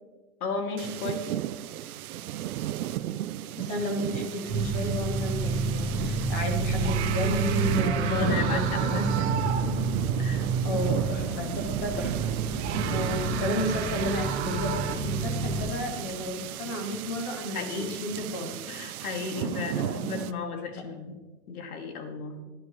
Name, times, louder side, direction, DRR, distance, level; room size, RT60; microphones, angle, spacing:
voice 1, 0.4-1.3 8.0-9.1 9.6-9.7 10.2-10.5 12.8-13.1 17.5-18.3 18.7-21.1 21.5-22.4, left 4 dB, 70° left, 4 dB, 2.6 m, -34 dB
sound 1, 0.8-20.3, right 12 dB, 70° right, 0.7 m, -35 dB
voice 2, 3.6-9.3 10.6-18.5 19.8-19.9, left 1 dB, 10° left, 3 dB, 0.4 m, -33 dB
sound 2, 4.5-15.7, right 4 dB, 15° right, 1.9 m, -29 dB
sound 3, 6.2-6.3 6.7-9.9 10.3-10.4 11.9-15.0, right 10 dB, 45° right, 1.0 m, -35 dB
21.0 x 11.0 x 3.2 m, 1.3 s
supercardioid pair, 170°, 45 cm